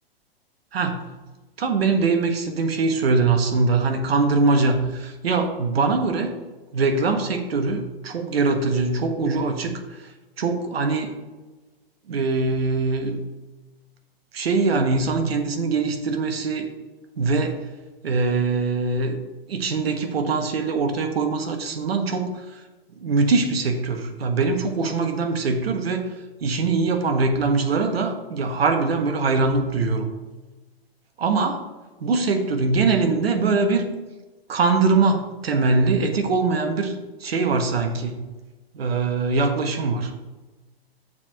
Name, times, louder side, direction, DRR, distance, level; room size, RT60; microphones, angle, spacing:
voice 1, 0.7-1.1 1.6-6.4 6.7-10.0 10.4-11.2 12.1-13.2 14.3-16.7 17.2-17.6 18.0-19.2 19.5-22.6 23.0-26.1 26.4-30.1 31.2-31.6 32.0-33.9 34.5-36.9 37.2-38.2 38.7-40.1, right 3 dB, 75° right, 5 dB, 1.4 m, -22 dB
7.2 x 4.7 x 6.6 m, 1.2 s
hypercardioid pair, 125°, 31 cm